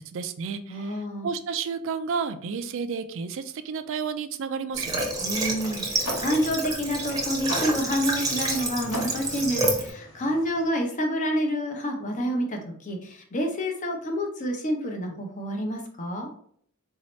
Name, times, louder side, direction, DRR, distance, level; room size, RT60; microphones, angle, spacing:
voice 1, 0.0-5.1, right 5 dB, 60° right, 11 dB, 0.4 m, -31 dB
voice 2, 0.7-1.3 5.2-16.3, equal, 35° left, 3 dB, 0.7 m, -28 dB
Water / Water tap faucet, 4.7-9.9, right 2 dB, 15° right, 0.7 m, -29 dB
sound 1, 5.2-10.6, equal, 80° left, 1.0 m, -39 dB
4.1 x 2.7 x 3.0 m, 0.62 s
head